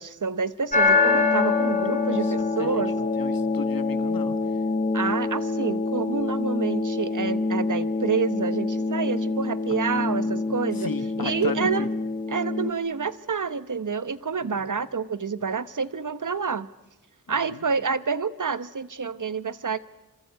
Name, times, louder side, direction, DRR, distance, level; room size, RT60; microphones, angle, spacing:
voice 1, 0.0-2.9 4.9-10.9 11.2-11.9 12.3-16.7 17.3-19.8, right 5 dB, 60° right, 15 dB, 1.1 m, -28 dB
sound 1, 0.7-12.7, left 3 dB, 25° left, 4.5 m, -25 dB
voice 2, 2.1-2.8 3.2-4.4 9.9-11.9 14.4-14.6 17.3-17.6, left 5 dB, 80° left, 11 dB, 1.6 m, -36 dB
26.5 x 25.5 x 8.3 m, 0.97 s
wide cardioid pair, 75°, 34 cm